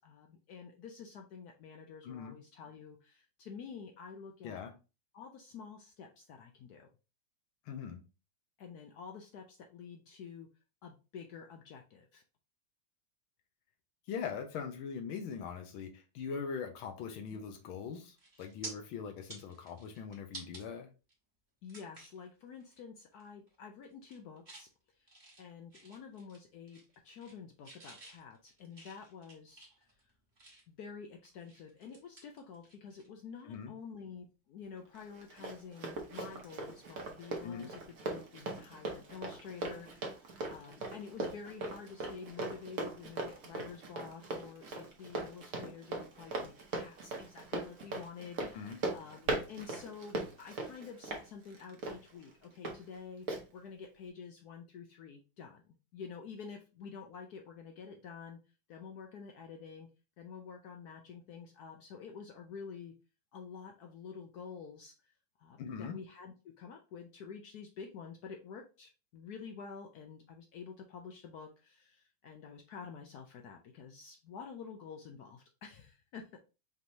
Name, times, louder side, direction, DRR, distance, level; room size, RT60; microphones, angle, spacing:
voice 1, 0.0-4.6 5.1-6.9 8.6-10.5 10.8-12.2 17.3-17.4 21.6-24.7 25.0-25.1 25.4-29.9 30.7-53.3 53.5-55.6 55.9-58.4 58.7-59.9 60.2-63.0 63.3-65.1 65.4-76.4, left 6 dB, 75° left, 4 dB, 0.9 m, -49 dB
voice 2, 2.0-2.4 4.4-4.7 7.7-8.0 14.1-20.9 33.4-33.7 37.4-37.7 48.4-48.8 65.6-66.0, left 6 dB, 90° left, 6 dB, 1.6 m, -41 dB
sound 1, 17.6-17.8 18.2-18.7 19.1-20.6 21.1-21.2 21.7-22.2 22.6-22.8 23.1-23.5 23.9-24.7 25.1-26.4 26.7-27.4 27.6-30.8 31.2-33.1 33.3-33.5 35.4-35.6, right 3 dB, 25° right, 1.2 m, -51 dB
Run, 34.9-52.8 53.3-53.4, right 2 dB, 55° right, 1.1 m, -40 dB
5.1 x 3.0 x 2.6 m, 0.31 s
omnidirectional pair, 2.2 m